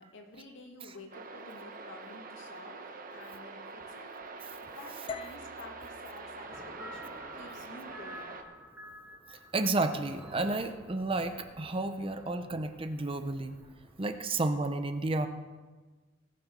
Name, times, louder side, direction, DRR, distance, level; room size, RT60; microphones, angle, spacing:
voice 1, 0.0-4.1 4.6-8.4, left 2 dB, 70° left, 2 dB, 2.1 m, -50 dB
sound 1, 1.1-8.4, right 3 dB, 45° right, 1.0 m, -45 dB
sound 2, 5.1-9.2, left 4 dB, 25° left, 0.3 m, -48 dB
sound 3, 6.5-14.0, equal, 5° right, 3.4 m, -50 dB
voice 2, 9.3-13.6 14.0-15.3, right 2 dB, 25° right, 8 dB, 0.6 m, -31 dB
18.0 x 7.2 x 5.4 m, 1.3 s
head